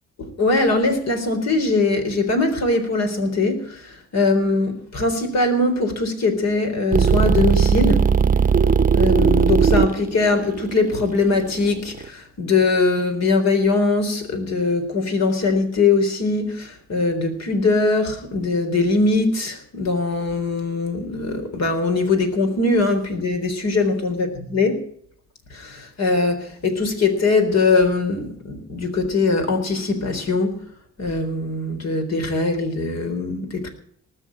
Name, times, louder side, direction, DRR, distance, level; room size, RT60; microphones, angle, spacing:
voice 1, 0.2-8.1 8.9-24.8 25.5-30.6 31.0-33.7, left 3 dB, 60° left, 6 dB, 3.8 m, -21 dB
sound 1, 6.9-12.1, right 6 dB, 30° right, 0.8 m, -18 dB
19.0 x 6.5 x 8.8 m, 0.64 s
cardioid pair, 90°, 30 cm